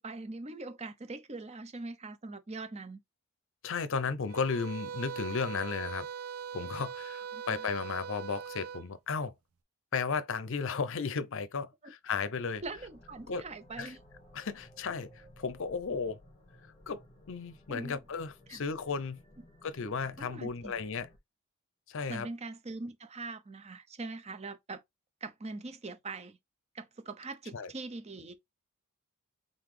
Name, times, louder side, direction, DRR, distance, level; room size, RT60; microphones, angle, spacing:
voice 1, 0.0-3.0 7.3-7.7 11.8-11.9 12.6-14.0 17.7-18.0 18.5-18.6 19.4-19.5 20.2-20.8 22.1-24.8 25.2-26.4 26.7-28.3, right 3 dB, 30° right, 0.7 m, -42 dB
voice 2, 3.6-6.1 6.5-9.3 9.9-12.6 13.3-13.4 13.8-13.9 14.3-16.2 16.9-17.0 17.3-19.2 19.6-21.1 21.9-22.3 27.5-27.7, left 5 dB, 60° left, 0.6 m, -34 dB
sound 1, 4.3-8.9, right 7 dB, 85° right, 0.6 m, -41 dB
sound 2, 12.5-21.2, left 1 dB, 35° left, 1.5 m, -57 dB
4.0 x 3.9 x 3.2 m
head